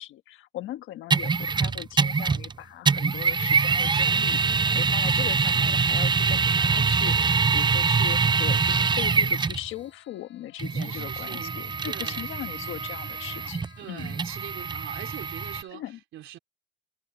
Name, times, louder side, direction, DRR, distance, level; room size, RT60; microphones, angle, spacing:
voice 1, 0.0-14.2 15.7-16.0, left 14 dB, 90° left, 1.4 m, -39 dB
sound 1, 1.1-2.5 2.8-9.7 10.6-15.6, right 5 dB, 20° right, 0.6 m, -24 dB
sound 2, 7.3-15.7, left 9 dB, 65° left, 6.7 m, -57 dB
voice 2, 10.7-11.5 11.9-12.3 13.8-16.4, right 12 dB, 80° right, 3.3 m, -42 dB
cardioid pair, 90°, 20 cm